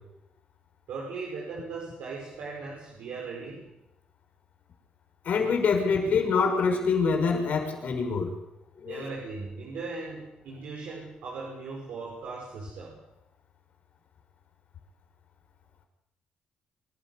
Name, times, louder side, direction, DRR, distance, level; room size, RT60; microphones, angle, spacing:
voice 1, 0.9-3.7 8.8-13.0, right 4 dB, 75° right, -3 dB, 5.9 m, -38 dB
voice 2, 5.2-8.3 8.8-9.0, left 5 dB, 65° left, 4 dB, 6.0 m, -25 dB
26.0 x 12.5 x 9.5 m, 0.93 s
supercardioid pair, 65°, 3 cm